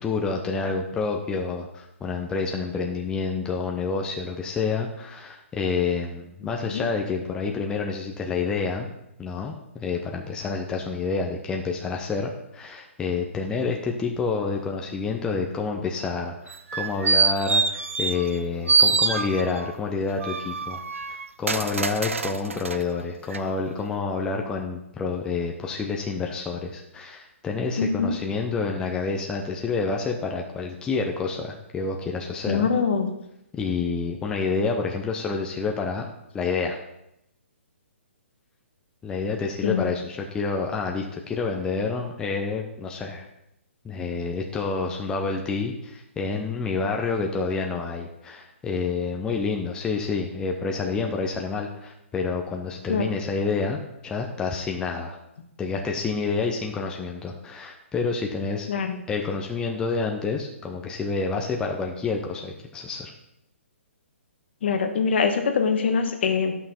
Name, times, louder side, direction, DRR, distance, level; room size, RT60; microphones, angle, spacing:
voice 1, 0.0-8.9 9.2-20.8 21.1-32.7 33.5-36.1 36.3-36.8 39.0-43.2 43.8-55.2 55.6-58.7 59.1-63.1, left 4 dB, 10° left, 1 dB, 0.7 m, -28 dB
sound 1, 16.5-18.4 18.7-19.7 20.2-22.8 23.3-23.4, right 4 dB, 80° right, 0.6 m, -24 dB
voice 2, 27.8-28.1 32.5-33.1 39.6-39.9 52.9-53.1 58.7-59.0 64.6-66.5, left 5 dB, 55° left, 5 dB, 1.3 m, -23 dB
10.5 x 5.9 x 4.3 m, 0.82 s
figure-of-eight pair, 130°, 7 cm